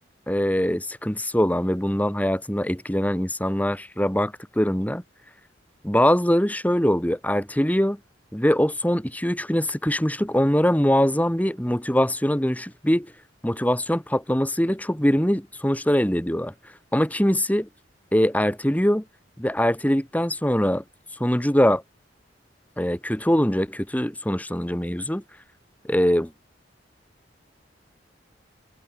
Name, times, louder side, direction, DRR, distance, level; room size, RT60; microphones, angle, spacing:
voice 1, 0.3-5.0 5.8-8.0 8.3-13.1 13.4-16.5 16.9-17.7 18.1-19.0 19.4-20.8 21.2-21.8 22.8-25.2 25.8-26.3, equal, 10° left, 2.4 m, -22 dB
head